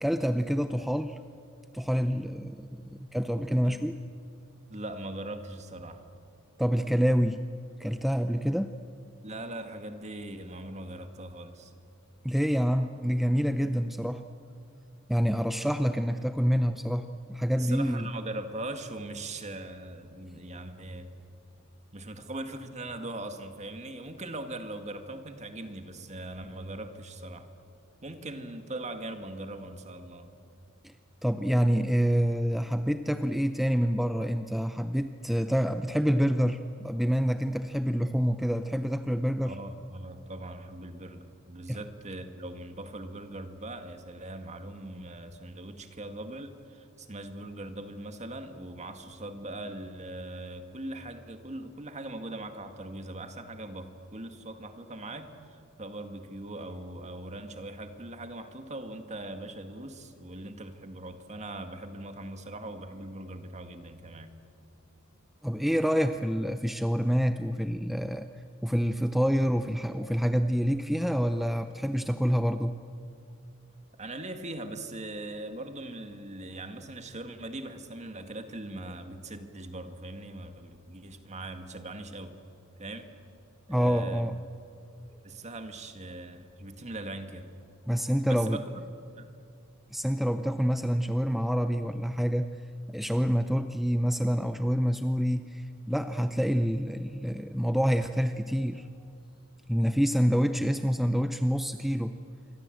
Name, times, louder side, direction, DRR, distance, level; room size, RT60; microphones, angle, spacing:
voice 1, 0.0-1.2 1.7-4.0 6.6-7.4 7.8-8.7 12.2-14.2 15.1-18.1 30.8-30.9 31.2-39.6 41.7-41.8 65.4-68.3 68.6-72.8 83.7-84.4 87.9-88.6 89.9-92.6 92.9-98.9 99.7-102.2, equal, ahead, 8 dB, 0.6 m, -27 dB
voice 2, 4.7-6.0 9.2-11.7 17.5-21.1 21.9-27.5 28.0-30.3 39.4-64.3 74.0-82.4 82.8-83.1 83.7-84.3 85.2-87.5 88.2-88.8 89.2-89.3, right 2 dB, 35° right, 7 dB, 2.0 m, -40 dB
27.5 x 24.5 x 7.8 m, 2.5 s
head